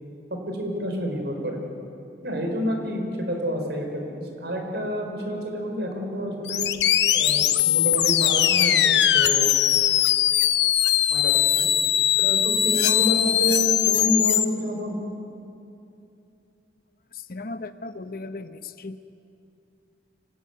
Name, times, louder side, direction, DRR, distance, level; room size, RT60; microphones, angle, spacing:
voice 1, 0.5-1.6 2.2-6.7 7.1-9.5 11.1-11.7 12.2-15.0, equal, 70° right, 3 dB, 4.8 m, -29 dB
sound 1, 6.5-14.4, left 11 dB, 80° left, 0.9 m, -20 dB
voice 2, 17.1-19.0, left 3 dB, 55° left, 10 dB, 0.9 m, -36 dB
25.0 x 19.0 x 9.5 m, 2.8 s
head